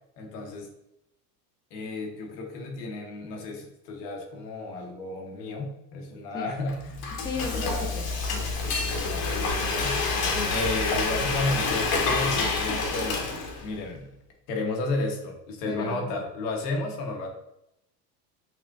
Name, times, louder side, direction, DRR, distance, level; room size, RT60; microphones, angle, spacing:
voice 1, 0.2-0.7 1.7-7.1 7.4-8.0 8.6-14.1 14.5-17.3, left 2 dB, 80° left, 2 dB, 1.1 m, -33 dB
Frying (food), 6.7-13.8, left 3 dB, 50° left, 1.0 m, -28 dB
voice 2, 7.2-8.4 10.4-10.6 15.6-16.1, left 4 dB, 10° left, 3 dB, 0.4 m, -35 dB
6.1 x 2.1 x 2.5 m, 0.83 s
hypercardioid pair, 90°, 48 cm